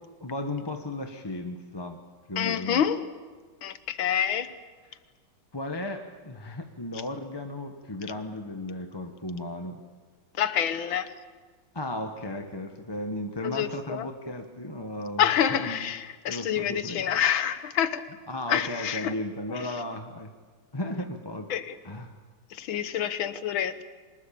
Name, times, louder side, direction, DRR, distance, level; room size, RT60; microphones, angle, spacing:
voice 1, 0.2-2.0 2.3-2.8 5.5-9.8 11.7-15.2 15.5-15.8 16.3-17.2 18.3-20.3 20.7-21.5 21.8-22.2, left 1 dB, 15° left, 1.0 m, -35 dB
voice 2, 2.4-3.0 3.6-4.5 10.4-11.1 13.4-14.1 15.2-18.0 18.5-19.1 19.5-19.6 21.5-21.8 22.5-23.8, left 9 dB, 80° left, 1.9 m, -27 dB
24.5 x 20.0 x 8.6 m
omnidirectional pair, 2.2 m